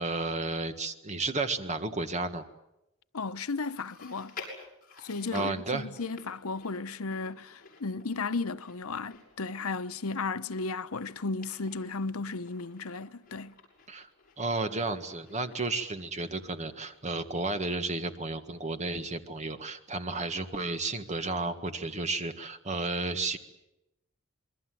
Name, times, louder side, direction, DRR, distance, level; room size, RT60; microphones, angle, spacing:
voice 1, 0.0-2.4 5.3-5.9 13.9-14.1 14.4-23.4, right 3 dB, 35° right, 1.7 m, -32 dB
voice 2, 3.1-4.3 5.0-13.5, left 4 dB, 90° left, 0.9 m, -34 dB
Chewing mastication, 3.8-17.3 17.6-17.7 18.5-18.6, left 4 dB, 45° left, 7.7 m, -52 dB
27.0 x 22.5 x 7.8 m
head